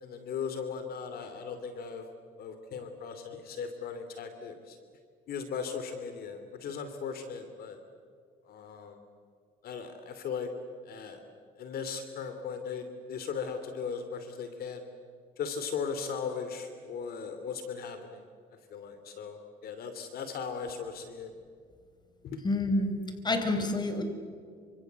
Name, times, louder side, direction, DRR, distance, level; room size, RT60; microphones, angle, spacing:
voice 1, 0.0-2.0 2.4-4.8 5.3-7.8 8.4-9.0 9.6-10.5 10.8-11.2 11.6-14.8 15.4-18.3 18.7-21.3 22.2-22.4, left 6 dB, 65° left, 8 dB, 2.9 m, -38 dB
voice 2, 22.4-22.9 23.2-24.0, left 2 dB, 25° left, 7 dB, 4.6 m, -28 dB
27.5 x 25.5 x 8.1 m, 2.2 s
cardioid pair, 110°, 17 cm